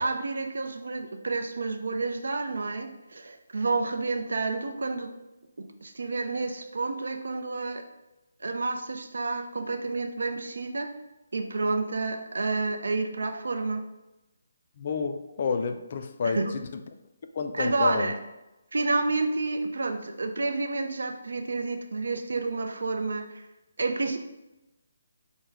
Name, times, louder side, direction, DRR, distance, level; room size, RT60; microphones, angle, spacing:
voice 1, 0.0-5.1 5.6-7.8 8.4-10.9 11.3-13.8 16.2-16.5 17.5-18.2 18.7-23.5 23.8-24.2, right 3 dB, 80° right, 5 dB, 0.5 m, -30 dB
voice 2, 14.8-16.8 17.3-18.2, left 5 dB, 45° left, 7 dB, 0.4 m, -29 dB
5.8 x 2.1 x 3.4 m, 0.97 s
hypercardioid pair, 165°, 0 cm